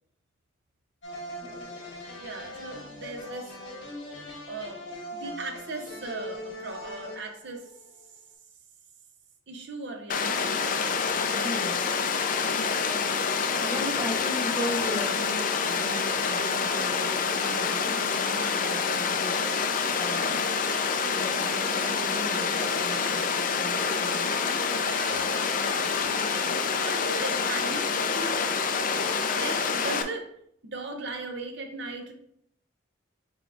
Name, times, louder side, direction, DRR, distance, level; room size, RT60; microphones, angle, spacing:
sound 1, 1.0-8.0, left 1 dB, 65° left, 1.6 m, -41 dB
voice 1, 2.2-3.5 4.5-4.8 5.1-7.7 9.5-10.6 11.9-12.0 24.7-25.6 26.2-26.3 26.8-28.7 29.4-30.3 30.6-32.1, right 3 dB, 60° right, 4 dB, 0.6 m, -38 dB
Water, 10.1-30.0, left 5 dB, 40° left, 0.4 m, -27 dB
voice 2, 11.4-11.8 13.6-20.4 21.1-24.4 26.0-26.1, equal, 10° right, -1 dB, 0.7 m, -38 dB
5.8 x 3.5 x 2.4 m, 0.70 s
head